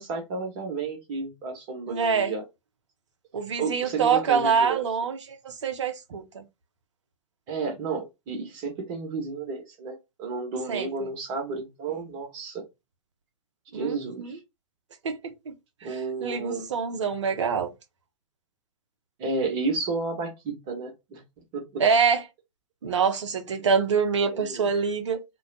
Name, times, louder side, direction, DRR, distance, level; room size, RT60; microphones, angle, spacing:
voice 1, 0.0-2.4 3.6-4.8 7.5-12.6 13.7-14.4 15.8-16.7 19.2-21.2 21.5-21.8 24.2-24.7, right 4 dB, 40° right, 1.2 m, -32 dB
voice 2, 1.9-2.3 3.3-6.4 10.7-11.1 13.7-14.4 15.0-15.5 15.9-17.7 21.8-22.2 22.8-25.2, right 6 dB, 65° right, 0.8 m, -25 dB
2.4 x 2.2 x 3.9 m
figure-of-eight pair, 100°, 16 cm